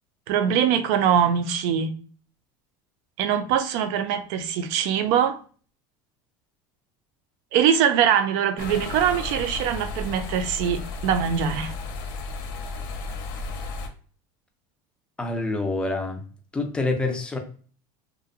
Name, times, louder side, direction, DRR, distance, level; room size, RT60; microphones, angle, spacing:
voice 1, 0.3-1.9 3.2-5.4 7.5-11.7, right 8 dB, 60° right, 0.4 m, -22 dB
sound 1, 8.6-13.9, left 3 dB, 80° left, 0.7 m, -33 dB
voice 2, 15.2-16.2 16.5-17.4, left 2 dB, 10° left, 0.4 m, -26 dB
2.6 x 2.0 x 2.5 m
cardioid pair, 160°, 11 cm